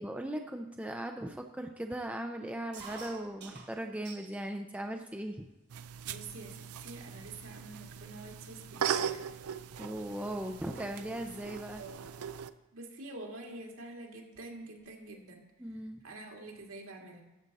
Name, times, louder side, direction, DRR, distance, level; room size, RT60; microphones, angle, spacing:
voice 1, 0.0-5.5 9.8-11.8 15.6-16.0, right 1 dB, 5° right, 4 dB, 0.5 m, -38 dB
sound 1, 2.7-4.5 4.9-5.6 6.2-6.3 6.6-7.0 7.6-7.7 7.9-10.2 10.4-10.8 12.1-12.3 13.4-13.5 13.8-13.9 14.1-15.0, right 5 dB, 50° right, 1.7 m, -52 dB
sound 2, 5.7-12.5, right 8 dB, 90° right, 0.5 m, -39 dB
voice 2, 6.0-9.2 11.8-12.0 12.7-15.4 16.0-17.2, right 2 dB, 70° right, 0 dB, 2.1 m, -47 dB
13.5 x 7.9 x 4.1 m, 1.0 s
head